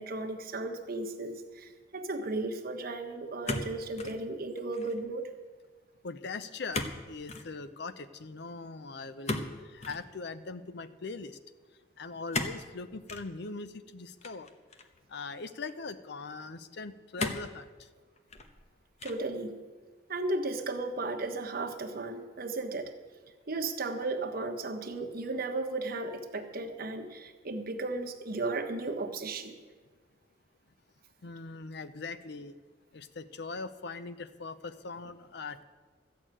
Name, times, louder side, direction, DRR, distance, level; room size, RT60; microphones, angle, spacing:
voice 1, 0.0-5.3 19.0-19.6 20.1-22.9 23.5-29.5, right 2 dB, 50° right, 4 dB, 1.2 m, -35 dB
sound 1, 3.4-4.2 4.6-5.0 6.7-7.0 7.3-7.5 9.2-10.0 12.3-12.6 13.1-13.3 14.2-15.0 15.7-15.8 17.2-17.6 18.2-18.6 19.0-19.3, left 3 dB, 35° left, 1.0 m, -35 dB
voice 2, 6.0-11.4 12.0-14.5 15.1-17.9 31.2-32.5 32.9-35.6, left 3 dB, 60° left, 12 dB, 0.6 m, -41 dB
14.0 x 6.5 x 8.9 m, 1.4 s
head